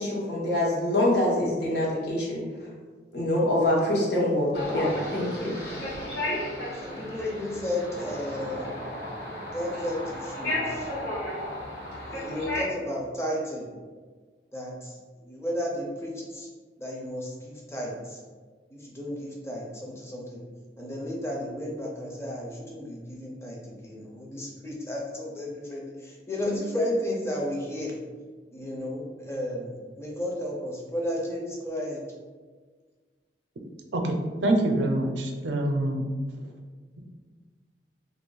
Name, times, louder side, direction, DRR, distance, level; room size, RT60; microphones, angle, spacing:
voice 1, 0.0-2.4 3.1-5.5, left 1 dB, 65° left, -4 dB, 1.0 m, -25 dB
sound 1, 4.5-12.6, left 1 dB, 85° left, 1.4 m, -33 dB
voice 2, 6.8-8.7 9.5-10.9 12.0-13.7 14.5-16.5 16.8-18.2 18.7-20.4 20.8-27.9 28.5-32.0, left 1 dB, 15° left, -2 dB, 0.5 m, -33 dB
voice 3, 34.4-36.0, right 1 dB, 85° right, 3 dB, 0.5 m, -25 dB
3.1 x 2.5 x 3.9 m, 1.5 s
head